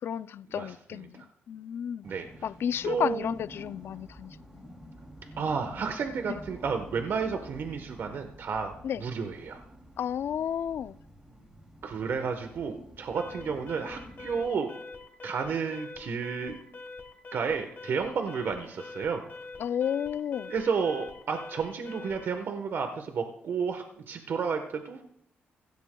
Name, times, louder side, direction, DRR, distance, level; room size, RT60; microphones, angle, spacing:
voice 1, 0.0-2.1 2.4-4.5 6.3-6.4 8.8-9.0 10.0-11.0 19.6-20.5, left 9 dB, 65° left, 0.4 m, -32 dB
voice 2, 0.6-1.3 2.0-2.3 2.8-3.3 5.4-8.7 9.0-9.6 11.8-14.7 15.2-16.6 17.3-19.2 20.5-25.0, right 5 dB, 60° right, 1.1 m, -31 dB
sound 1, 2.0-14.4, equal, 15° right, 2.6 m, -49 dB
Alarm, 13.1-22.4, left 3 dB, 45° left, 2.9 m, -45 dB
16.0 x 15.5 x 2.3 m
cardioid pair, 80°, 4 cm